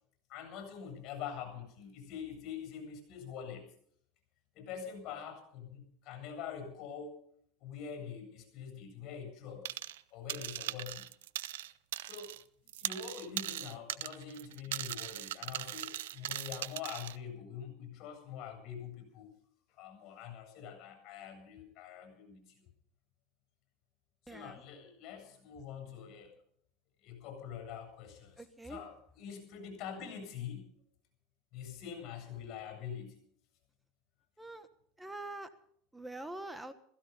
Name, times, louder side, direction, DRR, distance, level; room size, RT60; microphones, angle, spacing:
voice 1, 0.3-3.7 4.5-7.3 7.6-9.7 10.1-11.1 12.0-12.3 12.8-19.3 19.8-22.6 24.3-26.3 27.0-30.7 31.5-33.2, left 7 dB, 50° left, 5 dB, 7.9 m, -45 dB
sound 1, 9.7-10.0 10.3-12.4 12.7-17.2, right 14 dB, 90° right, 0.6 m, -39 dB
voice 2, 24.3-24.6 28.4-28.8 34.4-34.7 35.0-35.5 35.9-36.7, right 2 dB, 5° right, 10 dB, 1.3 m, -44 dB
16.0 x 16.0 x 5.5 m, 0.65 s
supercardioid pair, 120°, 0 cm